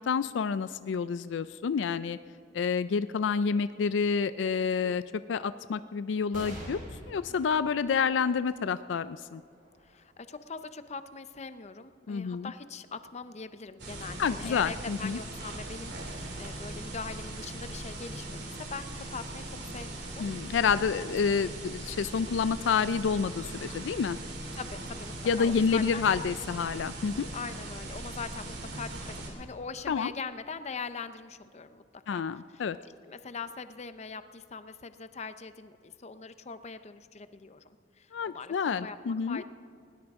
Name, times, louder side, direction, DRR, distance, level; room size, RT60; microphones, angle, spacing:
voice 1, 0.1-2.2 2.5-5.0 5.3-9.4 12.1-12.5 14.2-15.2 20.2-24.2 25.3-27.3 29.9-30.1 32.1-32.8 38.1-39.4, left 6 dB, 80° left, 14 dB, 0.4 m, -29 dB
sound 1, 6.3-13.2 13.8-13.9 15.0-15.6, right 1 dB, 50° right, 5.0 m, -49 dB
voice 2, 7.1-7.5 9.8-20.3 21.0-21.4 24.5-26.0 27.3-32.2 32.5-32.7 33.0-39.0 39.3-39.4, left 5 dB, 40° left, 11 dB, 0.6 m, -42 dB
sound 2, 13.8-29.3, right 2 dB, 65° right, 2.8 m, -40 dB
20.0 x 18.0 x 3.6 m, 2.4 s
head